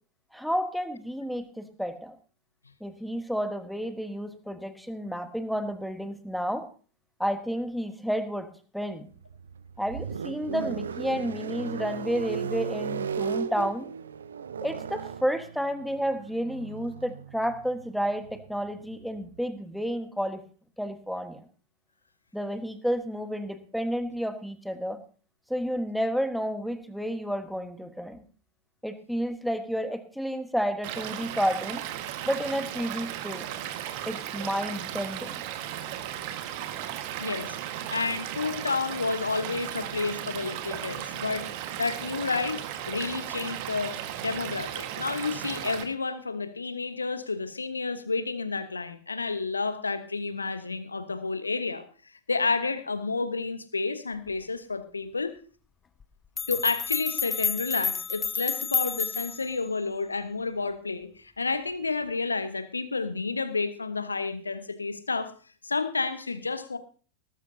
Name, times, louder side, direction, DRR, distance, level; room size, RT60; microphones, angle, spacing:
voice 1, 0.3-2.1 2.8-6.7 7.2-9.1 9.8-13.9 14.6-20.4 20.8-21.4 22.3-25.0 25.5-28.2 28.8-31.8 32.2-33.5 34.1-35.4, equal, ahead, 10 dB, 1.4 m, -31 dB
sound 1, 9.1-19.4, right 6 dB, 70° right, 0.8 m, -36 dB
Stream / Liquid, 30.8-45.8, right 11 dB, 45° right, 1.6 m, -36 dB
voice 2, 37.2-37.6 37.9-41.5 41.8-42.6 42.9-51.9 52.3-55.3 56.5-65.3 65.6-66.8, left 4 dB, 80° left, 12 dB, 1.2 m, -30 dB
sound 2, 56.0-56.1 56.4-59.5, left 6 dB, 20° left, 0.6 m, -30 dB
18.5 x 13.0 x 2.8 m, 0.40 s
figure-of-eight pair, 90°, 0 cm